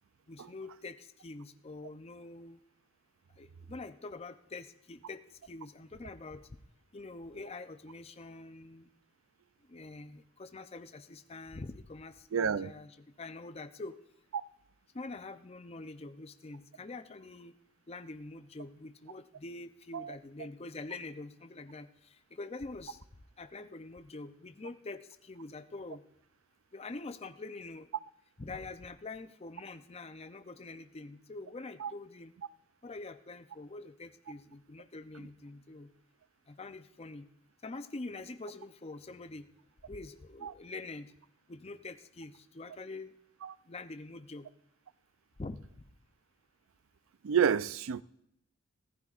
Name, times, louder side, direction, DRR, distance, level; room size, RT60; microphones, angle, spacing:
voice 1, 0.3-2.6 3.4-5.2 5.5-6.4 6.9-8.9 9.7-13.9 14.9-17.6 17.9-21.9 22.3-23.0 23.4-26.0 26.7-27.9 28.4-32.3 32.8-35.9 36.5-37.3 37.6-39.4 39.9-41.1 41.5-43.1 43.7-44.5 45.4-45.7, left 3 dB, 30° left, 0.5 m, -45 dB
voice 2, 12.3-12.7 19.9-20.1 31.8-31.9 40.4-40.5 43.4-43.5 47.2-48.0, right 7 dB, 80° right, 0.4 m, -29 dB
25.0 x 14.5 x 2.5 m
head